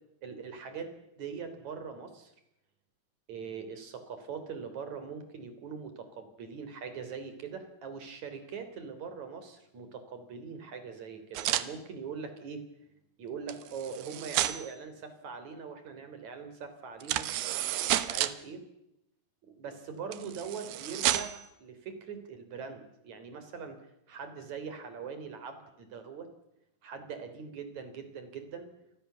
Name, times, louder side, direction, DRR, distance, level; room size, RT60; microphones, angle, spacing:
voice 1, 0.2-0.9 1.2-2.3 3.3-12.6 13.2-17.3 17.8-18.6 19.5-23.8 24.1-26.3 26.8-28.7, right 6 dB, 50° right, 9 dB, 4.6 m, -42 dB
sound 1, 11.4-11.7 13.5-14.7 17.0-18.3 20.1-21.5, right 13 dB, 85° right, 3.1 m, -31 dB
28.5 x 22.0 x 6.9 m, 0.84 s
omnidirectional pair, 4.4 m